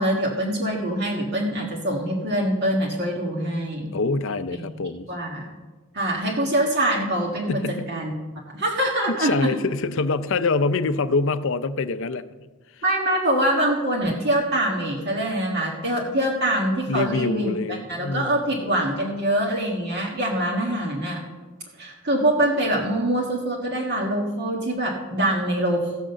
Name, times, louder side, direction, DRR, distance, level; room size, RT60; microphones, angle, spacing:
voice 1, 0.0-3.9 4.5-4.7 5.1-5.5 5.9-7.6 7.9-8.1 8.5-9.5 12.8-17.5 17.9-21.2 21.8-25.9, right 1 dB, 45° right, -2 dB, 1.5 m, -24 dB
voice 2, 3.9-5.1 7.5-7.9 9.2-12.2 16.9-18.6, left 3 dB, 60° left, 13 dB, 0.5 m, -25 dB
15.0 x 6.3 x 6.7 m, 1.3 s
head